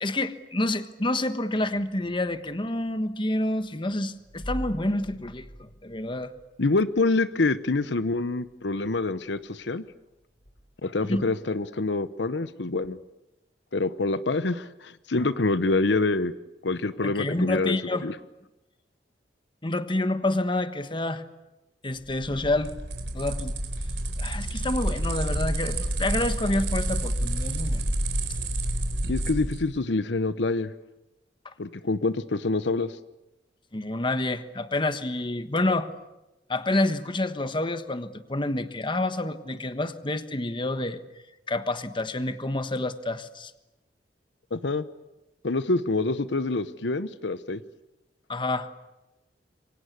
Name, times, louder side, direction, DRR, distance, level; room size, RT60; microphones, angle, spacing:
voice 1, 0.0-6.3 11.1-11.2 17.0-18.1 19.6-21.2 21.8-22.7 23.1-23.5 24.2-27.8 33.7-35.9 36.5-41.0 41.5-43.5 48.3-48.7, left 2 dB, 30° left, 10 dB, 1.3 m, -28 dB
sound 1, 1.5-2.8 4.3-6.9 7.4-7.5 10.5-10.6, equal, 50° left, 4.8 m, -41 dB
voice 2, 6.6-9.8 10.8-13.0 13.7-16.3 16.6-17.8 18.0-18.1 29.1-30.7 31.6-33.0 44.5-44.8 45.4-47.6, left 3 dB, 75° left, 14 dB, 0.9 m, -26 dB
sound 2, 22.0-29.6, right 1 dB, 80° right, 4.5 m, -29 dB
27.0 x 24.0 x 8.2 m, 0.98 s
head